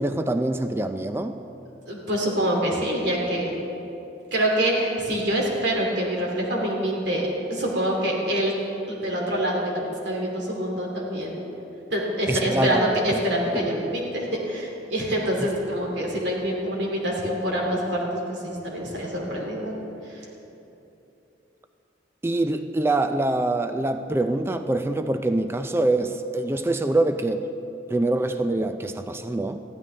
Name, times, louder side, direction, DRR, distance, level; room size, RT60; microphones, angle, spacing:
voice 1, 0.0-1.4 12.3-12.8 13.1-13.2 13.5-13.7 22.2-27.5 27.9-29.6, right 2 dB, 15° right, 8 dB, 0.4 m, -24 dB
voice 2, 1.9-3.5 4.3-8.5 8.9-11.4 11.9-18.0 18.4-19.7 20.1-20.2, right 1 dB, 70° right, -2 dB, 2.6 m, -25 dB
20.5 x 14.5 x 3.3 m, 3.0 s
head